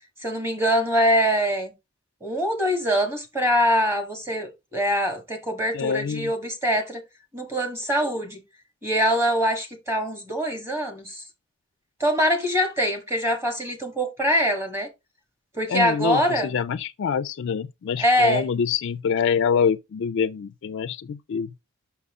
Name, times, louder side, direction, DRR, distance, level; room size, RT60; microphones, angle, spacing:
voice 1, 0.2-1.7 2.2-7.0 7.3-8.4 8.8-11.2 12.0-14.9 15.5-16.5 18.0-18.4, equal, 10° right, 1.4 m, -23 dB
voice 2, 5.7-6.3 15.7-21.5, left 6 dB, 55° left, 0.3 m, -25 dB
5.8 x 5.4 x 3.6 m
head